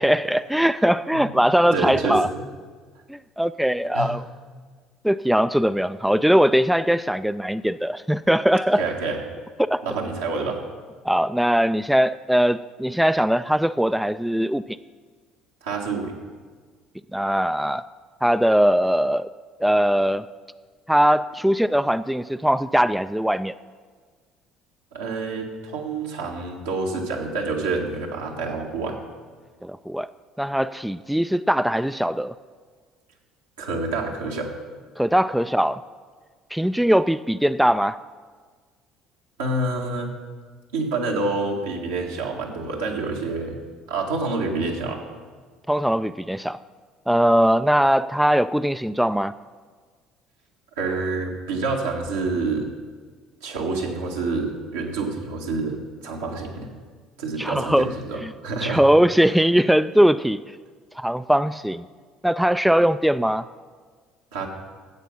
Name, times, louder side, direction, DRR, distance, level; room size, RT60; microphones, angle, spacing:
voice 1, 0.0-2.3 3.1-4.2 5.0-8.8 9.6-9.8 11.0-14.6 17.1-17.8 18.2-19.3 19.6-20.3 20.9-23.5 29.6-30.1 30.4-32.3 35.0-35.8 36.5-38.0 45.7-46.6 47.1-49.3 57.4-57.9 58.2-58.3 58.6-60.4 61.0-61.8 62.2-63.5, equal, 5° right, 13 dB, 0.3 m, -20 dB
voice 2, 1.7-2.4 3.9-4.1 8.8-9.2 9.8-10.6 15.6-16.1 24.9-29.0 33.6-34.5 39.4-40.1 40.7-43.6 43.9-45.0 50.8-52.7 53.4-56.7 57.2-58.8 64.3-64.5, right 3 dB, 80° right, -1 dB, 1.7 m, -27 dB
13.0 x 8.3 x 5.6 m, 1.5 s
hypercardioid pair, 60°, 0 cm